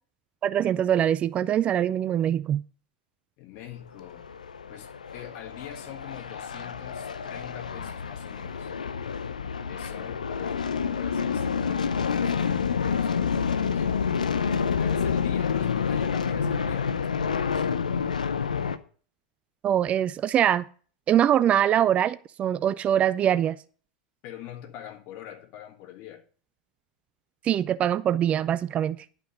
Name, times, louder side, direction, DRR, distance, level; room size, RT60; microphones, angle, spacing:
voice 1, 0.4-2.6 19.6-20.6 21.1-23.6 27.4-29.0, right 10 dB, 30° right, 0.4 m, -23 dB
voice 2, 3.4-4.3 4.7-8.7 9.7-13.9 14.8-17.8 24.2-26.2, left 12 dB, 50° left, 1.6 m, -44 dB
sound 1, 4.0-18.8, left 6 dB, 80° left, 0.6 m, -28 dB
11.0 x 5.9 x 5.3 m
figure-of-eight pair, 85°, 4 cm